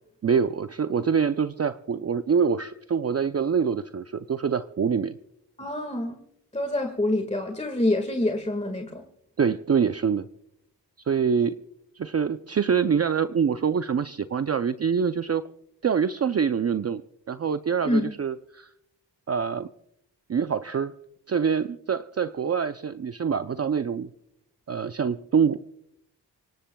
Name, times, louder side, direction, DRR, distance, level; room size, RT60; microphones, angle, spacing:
voice 1, 0.2-5.2 9.4-10.3 11.1-11.5 12.0-15.4 15.8-17.0 17.3-18.7 19.3-19.7 20.3-20.9 21.3-24.1 24.7-25.6, right 6 dB, 35° right, 11 dB, 0.5 m, -25 dB
voice 2, 5.6-6.2 6.5-9.0 17.8-18.1, left 1 dB, 15° left, 4 dB, 1.8 m, -26 dB
26.5 x 17.0 x 2.3 m, 0.79 s
cardioid pair, 65°, 42 cm